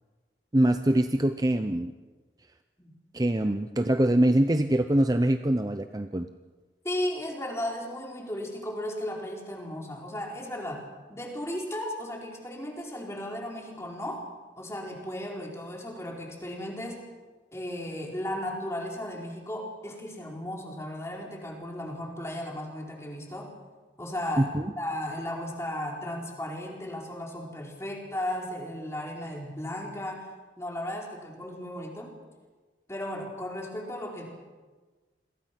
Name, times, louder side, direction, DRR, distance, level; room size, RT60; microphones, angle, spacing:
voice 1, 0.5-1.9 3.1-6.3 24.4-24.6, right 1 dB, 20° right, 8 dB, 0.7 m, -24 dB
voice 2, 6.8-14.2 14.6-17.0 17.5-23.5 24.0-30.3 30.6-32.1 32.9-34.3, left 1 dB, 15° left, 0 dB, 4.5 m, -35 dB
29.0 x 22.5 x 6.0 m, 1.3 s
head